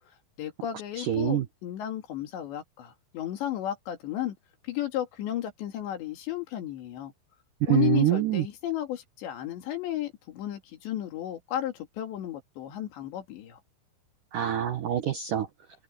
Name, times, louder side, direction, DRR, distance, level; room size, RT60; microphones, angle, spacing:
voice 1, 0.4-4.4 4.6-7.1 7.7-13.6, left 12 dB, 70° left, 4.4 m, -33 dB
voice 2, 1.0-1.4 7.7-8.4 14.3-15.5, right 12 dB, 75° right, 1.9 m, -25 dB
omnidirectional pair, 5.4 m